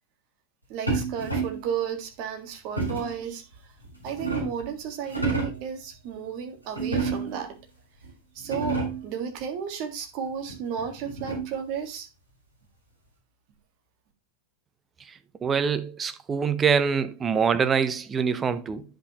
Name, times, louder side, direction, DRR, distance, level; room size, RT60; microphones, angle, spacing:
voice 1, 0.7-3.7 4.0-7.5 8.3-12.1, right 7 dB, 45° right, 1.8 m, -33 dB
sound 1, 0.9-1.7 2.8-3.2 3.8-4.7 5.0-5.7 6.7-7.5 8.0-8.1 8.4-9.1 10.5-11.7, right 3 dB, 85° right, 3.5 m, -30 dB
voice 2, 15.4-18.8, right 6 dB, 20° right, 0.7 m, -24 dB
10.0 x 5.5 x 3.0 m
figure-of-eight pair, 90°, 0 cm